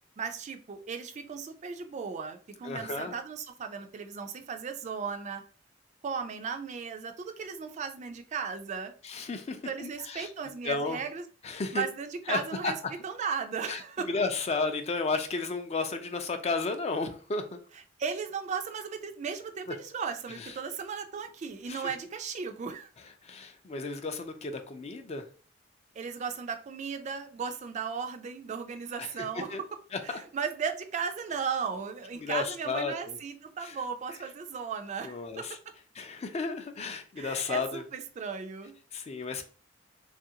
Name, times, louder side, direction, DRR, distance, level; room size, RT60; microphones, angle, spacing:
voice 1, 0.2-5.4 6.0-8.9 9.6-11.2 11.7-12.8 13.0-14.1 18.0-22.9 26.0-29.6 30.0-35.5 37.2-38.7, right 6 dB, 40° right, 7 dB, 0.3 m, -36 dB
voice 2, 2.6-3.1 9.0-10.3 10.6-11.0 11.4-11.8 12.3-12.7 13.7-13.8 14.1-17.6 20.4-20.5 21.7-21.9 23.2-25.2 29.0-29.1 29.3-29.6 29.9-30.2 32.2-33.2 33.6-33.7 35.0-35.6 36.0-37.8 38.9-39.4, left 4 dB, 35° left, 7 dB, 0.4 m, -33 dB
3.1 x 2.5 x 2.7 m, 0.40 s
head